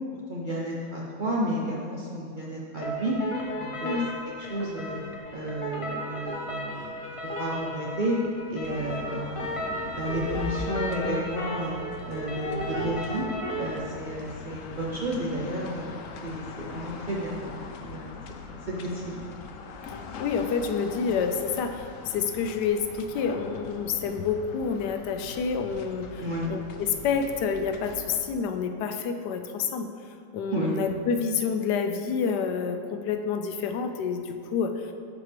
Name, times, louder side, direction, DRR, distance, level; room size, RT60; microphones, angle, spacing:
voice 1, 0.3-3.2 3.6-4.0 4.4-5.0 5.3-6.9 7.4-8.2 8.5-11.8 12.1-13.2 13.6-15.9 16.2-18.1 18.5-19.2 26.2-26.5 30.5-30.7, right 1 dB, 55° right, -5 dB, 0.5 m, -32 dB
sound 1, 2.8-13.8, equal, 50° left, 0.3 m, -35 dB
sound 2, 4.9-5.1 6.3-6.4 6.8-6.9 7.2-7.4 9.8-11.1 12.0-12.9, left 1 dB, 10° left, 1.2 m, -35 dB
sound 3, 8.6-28.3, left 4 dB, 70° left, 0.8 m, -43 dB
voice 2, 20.2-29.9 30.3-34.9, left 6 dB, 90° left, 7 dB, 1.2 m, -28 dB
7.1 x 6.5 x 3.4 m, 2.3 s
omnidirectional pair, 1.7 m